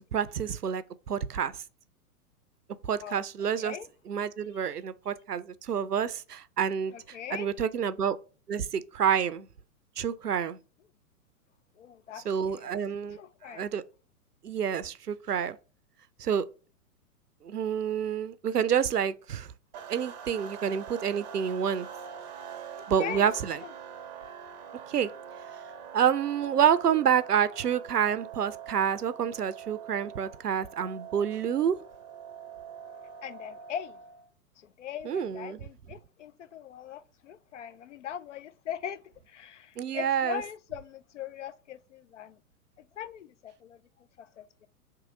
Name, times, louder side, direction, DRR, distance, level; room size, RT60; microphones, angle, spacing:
voice 1, 0.0-1.6 2.9-3.7 4.1-6.9 7.3-8.2 8.5-9.5 10.0-10.6 12.3-13.2 13.5-13.8 14.4-15.6 16.2-16.5 17.4-19.5 19.9-21.9 22.9-23.6 24.9-25.1 25.9-31.8 35.1-35.6 39.8-40.4, right 8 dB, 85° right, 0.6 m, -28 dB
voice 2, 6.9-7.5 11.8-12.8 13.1-13.7 22.8-23.3 23.6-23.7 33.2-34.0 34.6-42.4 42.8-44.7, left 9 dB, 55° left, 0.5 m, -41 dB
sound 1, 19.7-34.3, right 8 dB, 30° right, 0.6 m, -44 dB
3.7 x 2.9 x 4.9 m
figure-of-eight pair, 110°, 45 cm